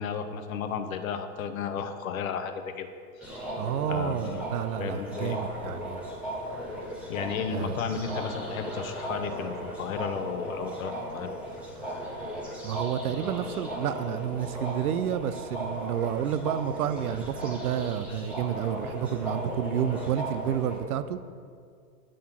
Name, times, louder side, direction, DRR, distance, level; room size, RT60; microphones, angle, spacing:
voice 1, 0.0-2.9 3.2-3.4 3.9-4.5 4.8-5.4 7.1-11.3 18.1-18.2, left 6 dB, 60° left, 8 dB, 0.8 m, -33 dB
sound 1, 3.2-20.8, equal, 5° right, 0.6 m, -36 dB
voice 2, 3.6-6.0 7.5-7.8 12.6-21.2, right 10 dB, 70° right, 13 dB, 0.5 m, -30 dB
8.4 x 3.8 x 5.8 m, 2.2 s
hypercardioid pair, 150°, 47 cm